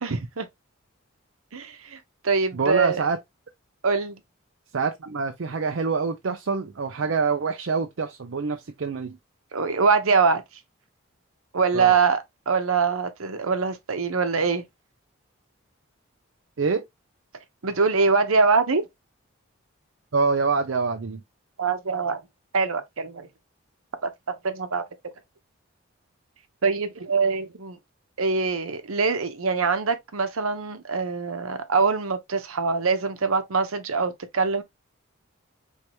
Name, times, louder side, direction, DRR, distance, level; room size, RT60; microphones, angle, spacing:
voice 1, 0.0-0.5 1.5-2.0 2.2-3.0 3.8-4.2 9.5-10.4 11.5-14.6 17.6-18.9 21.6-22.2 22.5-23.3 24.0-24.1 24.4-24.8 26.6-27.8 28.2-34.6, right 4 dB, 80° right, 0.9 m, -23 dB
voice 2, 2.5-3.2 4.7-9.2 11.7-11.9 16.6-16.9 20.1-21.2, right 4 dB, 60° right, 0.5 m, -26 dB
4.6 x 3.3 x 3.0 m
head